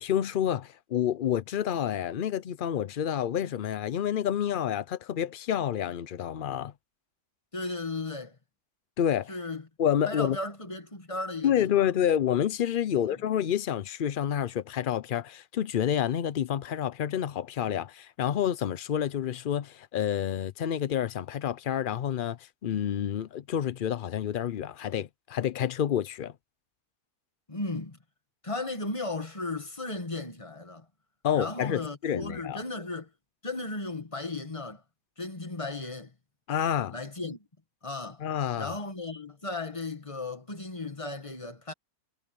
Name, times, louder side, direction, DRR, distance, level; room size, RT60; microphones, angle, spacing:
voice 1, 0.0-6.7 9.0-9.3 9.8-10.4 11.4-26.3 31.2-32.6 36.5-36.9 38.2-38.7, left 9 dB, 90° left, 0.4 m, -29 dB
voice 2, 7.5-8.4 9.3-9.7 10.1-11.9 12.9-13.2 27.5-28.0 28.4-30.9 31.3-33.1 33.4-34.8 35.2-36.1 36.9-37.4 37.8-38.2 38.6-41.7, left 2 dB, 20° left, 1.8 m, -35 dB
omnidirectional pair, 1.7 m